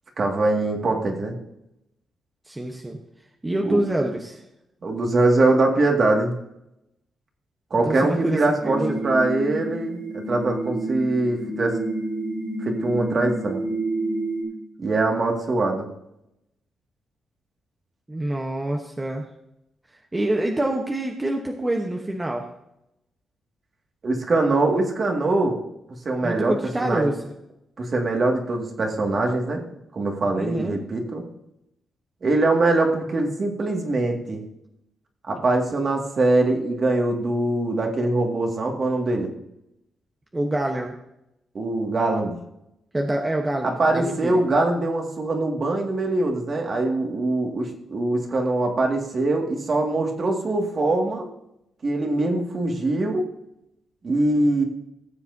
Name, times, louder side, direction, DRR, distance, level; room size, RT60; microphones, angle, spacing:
voice 1, 0.2-1.4 3.7-3.8 4.8-6.3 7.7-11.8 12.6-13.6 14.8-15.9 24.0-25.6 26.1-27.1 27.8-29.6 29.9-31.2 32.2-34.4 35.3-39.3 41.5-42.4 43.6-51.3 51.8-53.2 54.0-54.6, right 2 dB, 45° right, 2 dB, 2.2 m, -23 dB
voice 2, 2.5-3.0 3.4-4.4 7.8-8.4 8.6-8.9 18.1-19.2 20.1-22.4 26.2-27.3 30.3-30.8 40.3-40.9 42.9-44.3, right 1 dB, 15° right, 2 dB, 1.1 m, -26 dB
sound 1, 8.6-14.4, right 2 dB, 60° right, 3.6 m, -29 dB
17.0 x 7.2 x 2.8 m, 0.83 s
cardioid pair, 90°, 0 cm